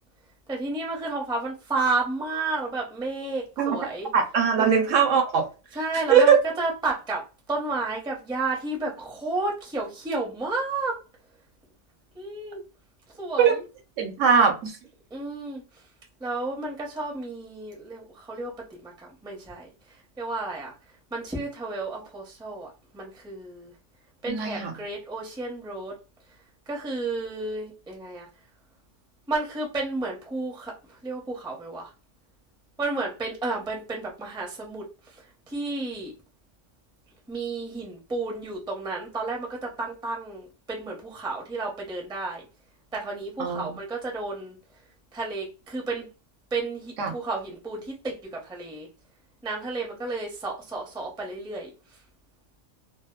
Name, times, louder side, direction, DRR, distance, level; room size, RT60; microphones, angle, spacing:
voice 1, 0.5-4.1 4.6-4.7 5.7-7.2 7.5-11.0 12.1-12.6 13.2-13.6 15.1-15.6 16.2-18.5 18.8-19.7 20.2-20.7 21.1-23.7 24.2-25.9 26.7-28.3 29.3-31.9 32.8-36.1 37.3-42.4 42.9-44.6 45.1-46.1 46.5-48.9 49.4-51.7, right 3 dB, 5° right, -2 dB, 0.4 m, -32 dB
voice 2, 4.1-5.5 6.1-6.4 13.4-13.5 14.0-14.8 24.3-24.7 43.4-43.8 47.0-47.1, right 7 dB, 75° right, 4 dB, 1.0 m, -20 dB
2.7 x 2.1 x 2.3 m, 0.33 s
omnidirectional pair, 1.4 m